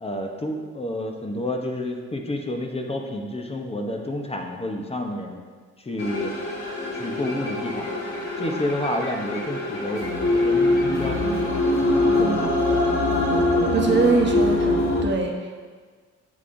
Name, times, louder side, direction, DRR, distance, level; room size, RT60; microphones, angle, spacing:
voice 1, 0.0-5.4 5.8-6.3 6.9-7.9 8.4-11.6 12.0-12.5, left 1 dB, 20° left, 2 dB, 0.8 m, -29 dB
sound 1, 6.0-15.0, left 2 dB, 60° left, 1.6 m, -23 dB
voice 2, 13.7-15.6, right 4 dB, 35° right, 1 dB, 1.1 m, -23 dB
8.1 x 7.0 x 2.6 m, 1.5 s
cardioid pair, 90°, 30 cm